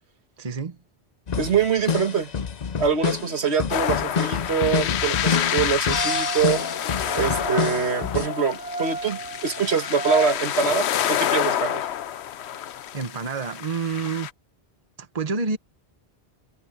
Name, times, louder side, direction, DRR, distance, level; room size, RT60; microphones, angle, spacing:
voice 1, 0.4-0.8 12.9-14.3 15.0-15.6, right 4 dB, 35° right, 1.3 m, -28 dB
sound 1, 1.3-8.3, left 6 dB, 45° left, 0.8 m, -28 dB
voice 2, 1.4-2.3 2.8-6.6 7.1-11.9, right 6 dB, 80° right, 1.8 m, -24 dB
sound 2, 3.7-14.3, left 10 dB, 80° left, 1.0 m, -28 dB
sound 3, 5.8-10.3, right 2 dB, 20° left, 1.6 m, -32 dB
omnidirectional pair, 1.1 m